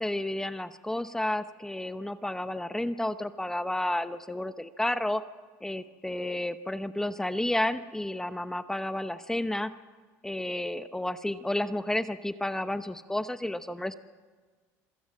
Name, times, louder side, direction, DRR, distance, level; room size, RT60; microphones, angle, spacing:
voice 1, 0.0-5.2 5.6-9.7 10.2-13.9, left 1 dB, 5° left, 11 dB, 0.8 m, -31 dB
26.0 x 16.0 x 7.4 m, 1.5 s
cardioid pair, 110°, 7 cm